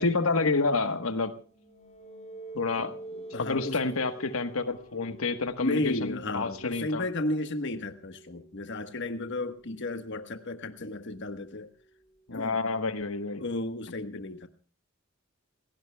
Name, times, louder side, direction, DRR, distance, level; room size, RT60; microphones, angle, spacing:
voice 1, 0.0-1.3 2.5-2.9 3.4-7.1 12.3-13.4, left 3 dB, 90° left, 1.3 m, -29 dB
sound 1, 1.5-12.3, right 1 dB, 35° left, 3.8 m, -48 dB
voice 2, 2.8-3.8 5.6-11.7 12.3-12.5 13.4-14.5, left 2 dB, 60° left, 1.3 m, -33 dB
29.5 x 17.0 x 2.3 m
head